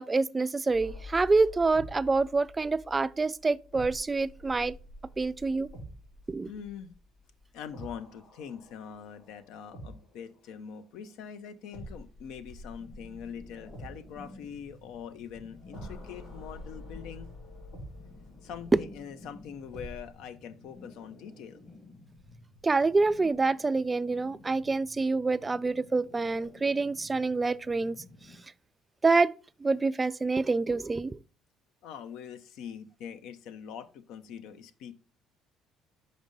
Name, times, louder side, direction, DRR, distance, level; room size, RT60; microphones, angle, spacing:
voice 1, 0.0-4.7 5.2-5.7 6.3-6.5 22.6-28.0 29.0-29.3 29.6-31.2, right 3 dB, 25° right, 0.3 m, -27 dB
sound 1, 0.7-10.5 11.7-20.1, left 1 dB, 90° left, 3.1 m, -47 dB
voice 2, 6.5-6.9 7.5-17.3 18.4-21.6 31.8-34.9, left 8 dB, 75° left, 0.6 m, -43 dB
sound 2, 12.7-28.4, left 2 dB, 45° left, 1.8 m, -53 dB
5.3 x 5.2 x 3.9 m
supercardioid pair, 70°, 0 cm